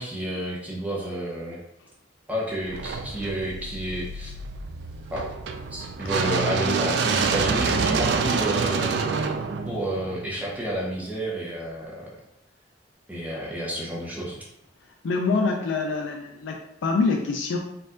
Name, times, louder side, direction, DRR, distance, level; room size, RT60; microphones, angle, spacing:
voice 1, 0.0-1.6 2.3-4.3 5.1-5.3 5.7-9.0 9.7-12.1 13.1-14.4, right 1 dB, 10° right, -5 dB, 0.7 m, -30 dB
sound 1, 2.7-10.7, right 5 dB, 60° right, 0.3 m, -27 dB
voice 2, 15.0-17.6, left 4 dB, 80° left, 2 dB, 0.4 m, -25 dB
4.3 x 2.5 x 3.7 m, 0.80 s
head